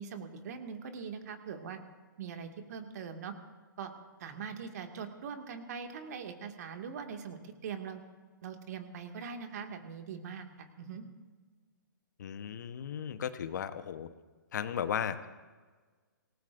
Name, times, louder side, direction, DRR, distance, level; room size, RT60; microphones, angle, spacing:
voice 1, 0.0-1.8 2.2-3.3 3.8-3.9 4.2-8.0 8.4-11.0, right 6 dB, 50° right, 5 dB, 2.0 m, -42 dB
voice 2, 12.2-14.1 14.5-15.3, left 8 dB, 60° left, 11 dB, 1.0 m, -35 dB
25.5 x 19.0 x 2.6 m, 1.4 s
figure-of-eight pair, 125°, 11 cm